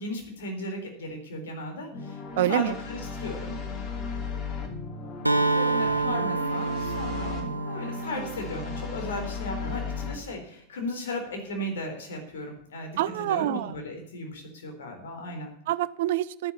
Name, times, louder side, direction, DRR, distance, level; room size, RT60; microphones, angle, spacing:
voice 1, 0.0-3.6 5.4-13.0 13.3-15.5, left 1 dB, 60° left, 3 dB, 3.8 m, -36 dB
sound 1, 1.9-10.2, left 5 dB, 35° left, 2.6 m, -36 dB
voice 2, 2.4-2.8 8.1-8.3 13.0-13.7 15.7-16.5, right 14 dB, 55° right, 18 dB, 0.5 m, -27 dB
Acoustic guitar, 5.3-9.1, right 3 dB, 85° right, 0.8 m, -28 dB
11.0 x 10.0 x 7.1 m, 0.74 s
figure-of-eight pair, 90°, 0 cm